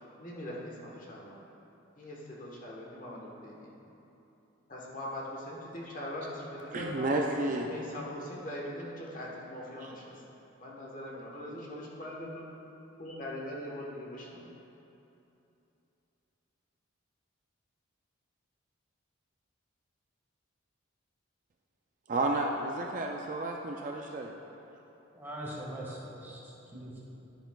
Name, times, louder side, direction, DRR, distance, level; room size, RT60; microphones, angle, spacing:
voice 1, 0.2-1.4 2.0-3.7 4.7-7.1 7.5-10.1 10.6-12.5 13.0-14.5, left 1 dB, 40° left, -4 dB, 1.2 m, -41 dB
voice 2, 6.7-7.7 22.1-24.3, right 2 dB, 40° right, 1 dB, 0.4 m, -31 dB
voice 3, 25.1-27.0, right 1 dB, 10° right, -6 dB, 1.5 m, -42 dB
10.0 x 10.0 x 2.3 m, 2.9 s
head